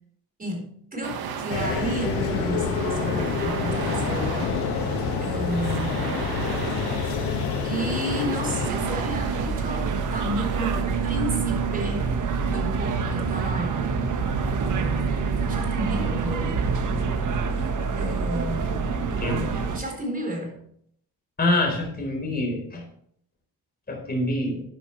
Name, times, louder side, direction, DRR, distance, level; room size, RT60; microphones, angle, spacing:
voice 1, 0.4-4.7 5.2-6.2 7.6-12.1 12.5-14.0 14.8-15.1 15.4-16.8 18.0-19.2 19.7-20.6, right 1 dB, 20° right, 1 dB, 4.1 m, -32 dB
sound 1, 1.0-10.8, right 6 dB, 70° right, 1.7 m, -35 dB
sound 2, 1.5-8.7, left 5 dB, 90° left, 1.9 m, -27 dB
sound 3, 8.6-19.8, right 5 dB, 50° right, 1.5 m, -26 dB
voice 2, 21.4-22.8 23.9-24.6, left 1 dB, 25° left, 0 dB, 4.3 m, -25 dB
13.0 x 9.9 x 3.3 m, 0.67 s
cardioid pair, 115°, 38 cm